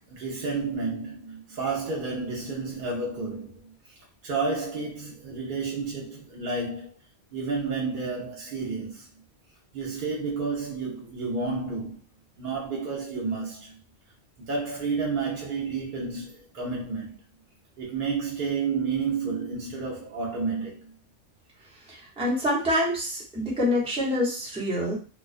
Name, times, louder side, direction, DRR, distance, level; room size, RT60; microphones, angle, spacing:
voice 1, 0.1-7.0 7.3-9.1 9.7-12.0 12.4-13.8 14.4-17.2 17.8-21.0, right 4 dB, 60° right, 0.6 m, -31 dB
voice 2, 21.8-24.9, left 1 dB, 5° right, 0.6 m, -26 dB
2.3 x 2.2 x 2.4 m
omnidirectional pair, 1.3 m